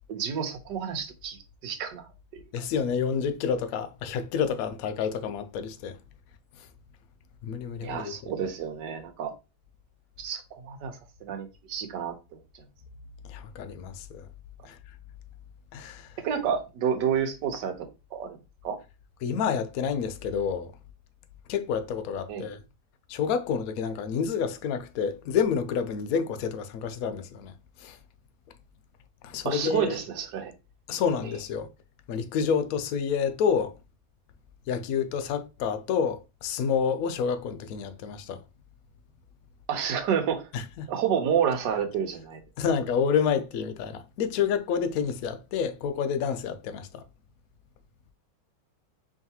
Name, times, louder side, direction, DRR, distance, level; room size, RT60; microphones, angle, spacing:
voice 1, 0.1-1.4 1.6-2.1 2.3-2.4 7.8-9.3 10.2-12.1 16.2-18.4 18.6-18.8 22.3-22.5 29.4-30.5 39.7-40.5 40.9-42.4, right 8 dB, 85° right, 1.5 m, -29 dB
voice 2, 2.5-6.0 7.4-8.3 13.3-14.3 14.6-14.7 15.7-16.1 19.2-20.7 21.5-22.6 23.1-27.5 27.8-28.0 29.2-30.0 30.9-31.7 32.1-33.7 34.7-38.4 40.5-40.9 42.6-47.0, left 7 dB, 70° left, 0.9 m, -28 dB
4.8 x 3.1 x 2.8 m
omnidirectional pair, 1.8 m